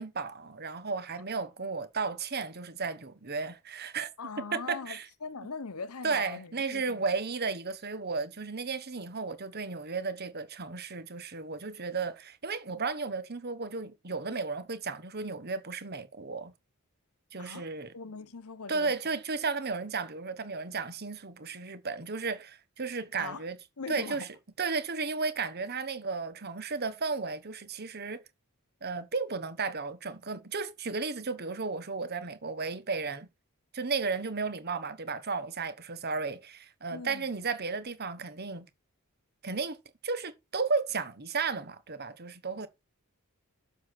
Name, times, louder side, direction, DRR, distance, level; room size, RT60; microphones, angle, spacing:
voice 1, 0.0-4.1 4.5-5.1 6.0-16.5 17.3-17.9 18.7-23.6 23.9-24.3 24.6-28.2 28.8-33.3 33.7-38.7 39.4-39.8 40.0-42.7, right 4 dB, 45° right, 1.2 m, -34 dB
voice 2, 4.2-7.1 17.4-17.7 17.9-18.9 23.2-23.4 23.8-24.3 36.9-37.3, left 4 dB, 80° left, 1.0 m, -41 dB
7.3 x 6.4 x 5.9 m
head